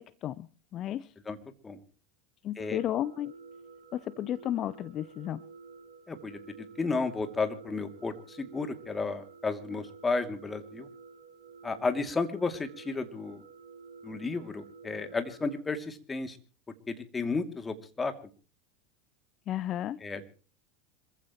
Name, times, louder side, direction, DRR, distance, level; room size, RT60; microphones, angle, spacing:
voice 1, 0.0-1.1 2.4-3.3 3.9-5.4 19.5-20.0, left 12 dB, 40° left, 19 dB, 0.7 m, -33 dB
sound 1, 2.6-15.6, right 5 dB, 70° right, 4.1 m, -51 dB
voice 2, 6.1-10.9 11.6-13.4 14.0-16.4 16.9-18.1 20.0-20.2, left 4 dB, 20° left, 8 dB, 2.7 m, -33 dB
26.5 x 15.0 x 3.1 m, 0.38 s
figure-of-eight pair, 80°, 0 cm